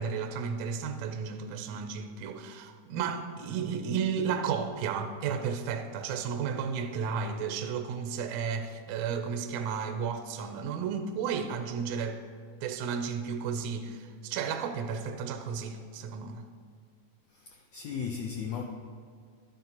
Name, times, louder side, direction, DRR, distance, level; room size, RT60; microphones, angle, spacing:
voice 1, 0.0-12.2 12.6-16.4, right 6 dB, 80° right, 6 dB, 1.6 m, -33 dB
voice 2, 17.3-18.6, left 7 dB, 80° left, 1 dB, 1.5 m, -36 dB
11.5 x 9.3 x 2.9 m, 2.2 s
omnidirectional pair, 3.7 m